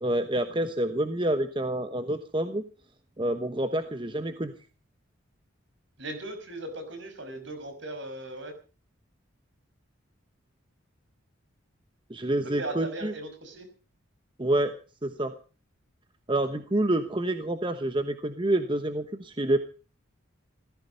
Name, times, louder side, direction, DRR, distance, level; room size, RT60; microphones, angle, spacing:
voice 1, 0.0-2.6 3.2-4.5 12.1-13.1 14.4-14.7 15.0-15.3 16.3-19.6, right 1 dB, 25° right, 9 dB, 1.1 m, -27 dB
voice 2, 6.0-8.5 12.4-13.7, right 1 dB, 60° right, 8 dB, 5.8 m, -38 dB
17.0 x 15.5 x 5.4 m, 0.37 s
head